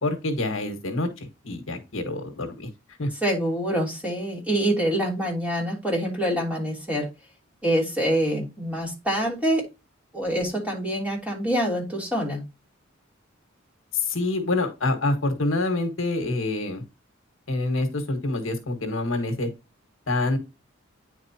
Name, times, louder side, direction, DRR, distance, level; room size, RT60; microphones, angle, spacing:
voice 1, 0.0-2.7 3.0-3.1 13.9-16.8 17.5-19.5 20.1-20.4, left 2 dB, 75° left, 6 dB, 1.6 m, -26 dB
voice 2, 3.2-7.1 7.6-9.6 10.1-12.4, equal, 5° right, -3 dB, 3.1 m, -25 dB
9.5 x 4.6 x 2.8 m, 0.25 s
head